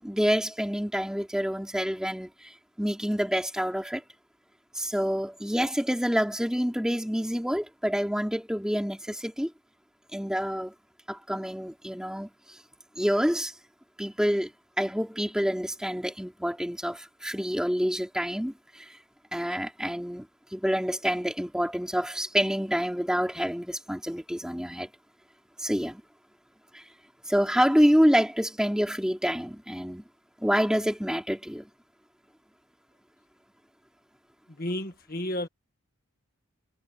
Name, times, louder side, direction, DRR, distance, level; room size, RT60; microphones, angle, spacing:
voice 1, 0.0-4.0 4.7-9.5 10.1-10.7 11.1-12.6 13.0-13.5 14.0-14.5 14.8-19.0 19.3-24.9 25.6-26.0 26.7-26.8 27.3-30.0 30.4-31.7, equal, 5° right, 4.2 m, -27 dB
voice 2, 34.6-35.5, left 1 dB, 40° left, 1.7 m, -31 dB
head